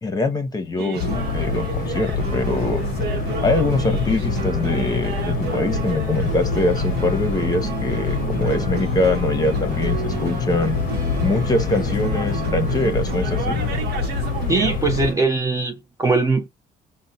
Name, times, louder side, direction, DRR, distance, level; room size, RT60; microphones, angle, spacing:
voice 1, 0.0-2.8 3.4-10.8 11.2-13.6, left 2 dB, 20° left, 0.9 m, -23 dB
sound 1, 0.8-15.2, right 6 dB, 70° right, 1.0 m, -30 dB
sound 2, 1.0-15.1, left 5 dB, 50° left, 0.6 m, -25 dB
voice 2, 14.5-16.5, right 3 dB, 20° right, 0.6 m, -21 dB
5.2 x 2.2 x 2.5 m
cardioid pair, 110°, 17 cm